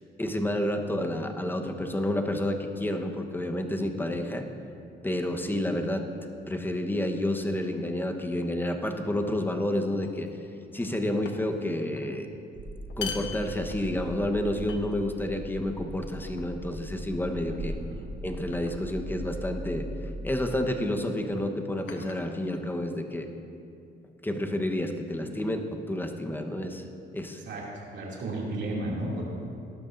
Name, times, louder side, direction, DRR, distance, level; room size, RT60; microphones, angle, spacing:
voice 1, 0.2-4.5 5.0-6.1 6.5-10.3 10.7-12.3 13.0-17.8 18.2-19.9 20.2-23.3 24.2-26.8 27.1-27.4, left 1 dB, 10° left, 4 dB, 1.1 m, -30 dB
sound 1, 8.9-9.2 10.0-10.5 10.8-11.7 11.9-12.1 12.8-14.2 14.7-15.3 16.1-16.6 17.5-17.8 18.5-18.9 20.1-20.3 21.2-23.0, left 7 dB, 75° left, 1.1 m, -44 dB
sound 2, 12.5-20.6, equal, 85° right, 1.7 m, -39 dB
voice 2, 27.9-29.2, right 2 dB, 65° right, -4 dB, 2.7 m, -33 dB
18.0 x 12.0 x 2.6 m, 2.6 s
cardioid pair, 90°, 20 cm